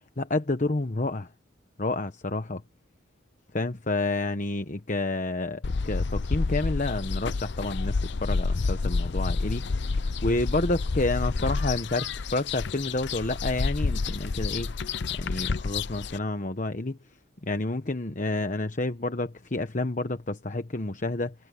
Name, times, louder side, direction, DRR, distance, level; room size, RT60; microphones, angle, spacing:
voice 1, 0.2-1.3 1.8-2.6 3.5-9.7 10.0-14.7 15.2-17.0 17.4-21.3, left 2 dB, 40° left, 1.1 m, -29 dB
sound 1, 5.6-16.2, left 4 dB, 60° left, 0.6 m, -29 dB
head